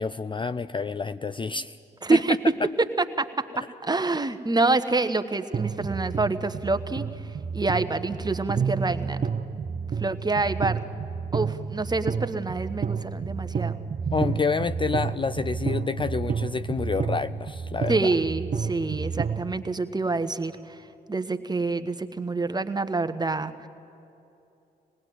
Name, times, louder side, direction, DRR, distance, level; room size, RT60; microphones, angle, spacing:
voice 1, 0.0-1.8 2.1-2.2 14.1-18.1, left 5 dB, 25° left, 13 dB, 0.5 m, -28 dB
voice 2, 2.0-2.4 3.2-7.1 7.5-9.2 10.0-10.8 11.3-13.8 17.9-20.8 21.1-23.7, right 3 dB, 20° right, 10 dB, 1.3 m, -27 dB
sound 1, 5.5-19.5, right 6 dB, 35° right, 0.9 m, -30 dB
25.5 x 19.5 x 9.2 m, 2.9 s
hypercardioid pair, 40°, 21 cm